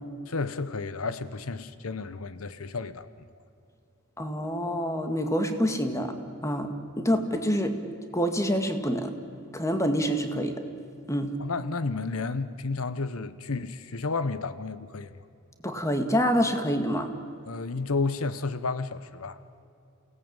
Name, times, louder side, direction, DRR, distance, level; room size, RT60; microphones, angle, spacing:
voice 1, 0.3-3.3 11.4-15.1 17.5-19.4, left 3 dB, 90° left, 1.0 m, -32 dB
voice 2, 4.2-6.1 6.4-7.8 8.1-9.1 9.5-10.6 11.1-11.3 15.6-17.1, equal, 15° left, 2.0 m, -26 dB
29.5 x 18.0 x 9.0 m
head